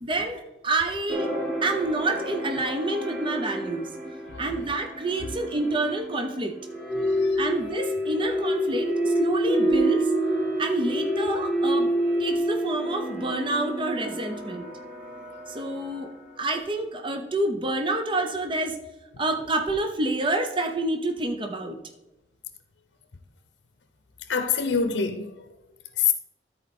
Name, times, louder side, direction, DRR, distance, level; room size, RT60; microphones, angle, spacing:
voice 1, 0.0-1.3 1.6-3.9 4.4-6.5 7.4-10.1 10.6-11.9 12.2-14.7 15.5-16.1 16.4-18.8 19.2-21.8, right 2 dB, 30° right, 0.7 m, -28 dB
sound 1, 1.1-16.4, right 1 dB, 55° right, 3.0 m, -28 dB
voice 2, 7.0-7.4 24.3-25.3 26.0-26.1, left 6 dB, 80° left, 0.7 m, -25 dB
13.5 x 4.4 x 4.2 m
head